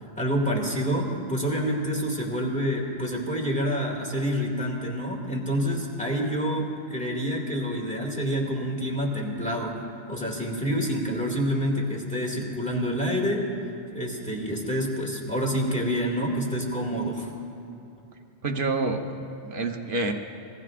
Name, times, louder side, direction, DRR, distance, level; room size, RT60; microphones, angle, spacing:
voice 1, 0.2-9.7 10.1-13.5 13.9-17.3, equal, 5° left, -1 dB, 2.2 m, -27 dB
voice 2, 18.4-20.1, right 3 dB, 45° right, 3 dB, 1.1 m, -28 dB
26.5 x 20.5 x 2.5 m, 2.9 s
omnidirectional pair, 1.3 m